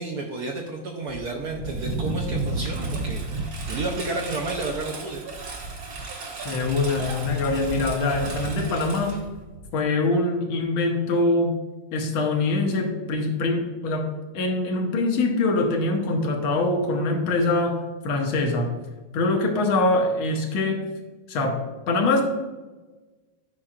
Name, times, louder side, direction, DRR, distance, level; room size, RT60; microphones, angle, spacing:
voice 1, 0.0-5.2, right 3 dB, 70° right, 1 dB, 0.9 m, -31 dB
Engine, 1.1-9.8, right 3 dB, 50° right, 1.3 m, -32 dB
voice 2, 6.5-9.2 9.7-11.6 11.9-14.1 14.3-18.8 19.1-20.9 21.3-21.6 21.9-22.2, left 2 dB, 80° left, 2 dB, 1.8 m, -23 dB
8.7 x 5.3 x 2.5 m, 1.2 s
omnidirectional pair, 2.2 m